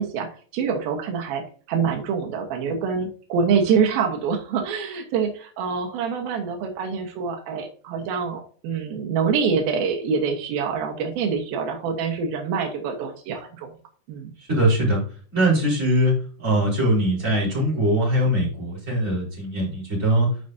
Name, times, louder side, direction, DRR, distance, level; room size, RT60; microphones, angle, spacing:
voice 1, 0.0-13.7 14.1-14.3, right 6 dB, 85° right, 3 dB, 3.1 m, -25 dB
voice 2, 14.5-15.0 15.3-20.3, right 1 dB, 20° right, -5 dB, 4.8 m, -21 dB
10.5 x 6.7 x 2.7 m, 0.42 s
omnidirectional pair, 4.1 m